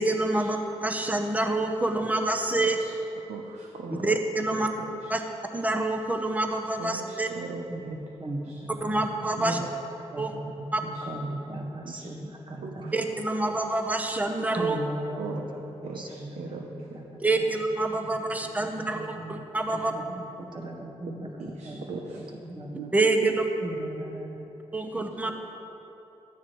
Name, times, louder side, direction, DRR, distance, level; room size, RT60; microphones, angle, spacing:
voice 1, 0.0-2.8 4.0-4.7 5.1-5.2 5.5-7.3 8.8-9.6 10.2-10.3 10.7-10.8 12.9-14.8 17.2-19.0 19.3-19.9 22.9-23.4 24.7-25.3, right 2 dB, 15° right, 4 dB, 0.9 m, -26 dB
voice 2, 2.6-4.2 4.5-5.1 6.8-7.7 8.5-8.6 9.4-9.7 10.9-11.1 11.8-12.1 12.6-13.0 13.5-13.6 15.2-15.4 15.8-17.0 21.6-22.2 22.7-22.9 23.2-23.4 24.9-25.1, right 5 dB, 85° right, 1 dB, 0.8 m, -38 dB
voice 3, 7.7-13.0 14.6-17.6 17.9-19.4 19.7-22.7 23.6-25.3, right 1 dB, 45° right, 1 dB, 1.6 m, -39 dB
13.5 x 9.5 x 3.1 m, 3.0 s
cardioid pair, 55°, 11 cm